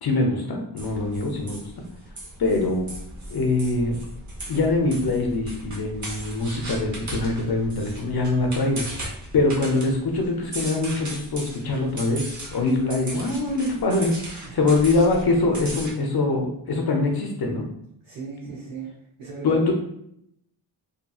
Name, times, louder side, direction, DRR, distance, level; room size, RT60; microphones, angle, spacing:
voice 1, 0.0-1.8 2.4-2.9 3.3-4.0 4.5-8.8 9.3-17.7 19.4-19.7, left 2 dB, 55° left, 2 dB, 0.5 m, -23 dB
sound 1, 0.8-15.9, right 1 dB, 40° right, 0.7 m, -37 dB
voice 2, 14.4-14.8 18.0-18.9 19.2-19.7, right 4 dB, 85° right, -6 dB, 0.9 m, -36 dB
2.7 x 2.6 x 2.3 m, 0.73 s
wide cardioid pair, 125°, 48 cm